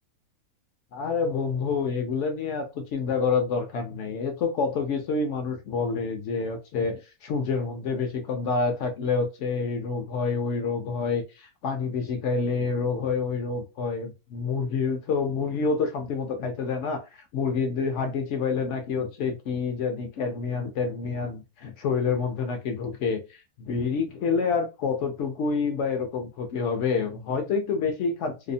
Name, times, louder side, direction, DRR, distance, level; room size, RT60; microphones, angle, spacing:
voice 1, 0.9-17.0 17.3-23.2 23.6-28.5, left 5 dB, 65° left, 0.8 m, -28 dB
2.7 x 2.0 x 2.5 m
omnidirectional pair, 1.5 m